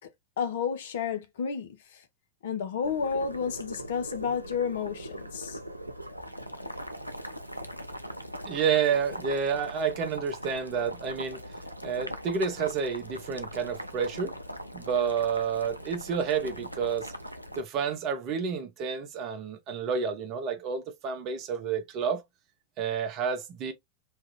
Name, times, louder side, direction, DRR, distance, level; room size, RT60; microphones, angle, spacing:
voice 1, 0.4-2.0 2.4-5.6, left 6 dB, 60° left, 0.6 m, -31 dB
Boiling, 2.8-17.6, equal, 90° right, 0.4 m, -40 dB
voice 2, 8.4-11.4 11.8-14.4 14.7-17.1 17.6-22.2 22.8-23.7, right 6 dB, 40° right, 0.8 m, -29 dB
3.3 x 2.3 x 2.8 m
figure-of-eight pair, 90°, 0 cm